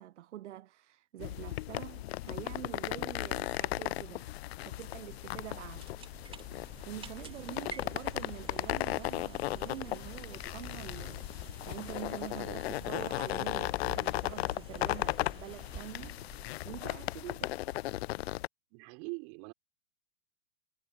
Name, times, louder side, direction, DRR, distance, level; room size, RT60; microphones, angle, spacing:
voice 1, 0.0-4.3 4.6-5.9 6.9-16.2 16.6-17.6, right 13 dB, 60° right, 1.0 m, -46 dB
sound 1, 1.2-18.5, left 16 dB, 50° left, 0.6 m, -36 dB
sound 2, 5.4-17.1, right 5 dB, 15° right, 2.9 m, -51 dB
voice 2, 18.7-19.5, right 36 dB, 40° right, 4.4 m, -43 dB
hypercardioid pair, 115°, 39 cm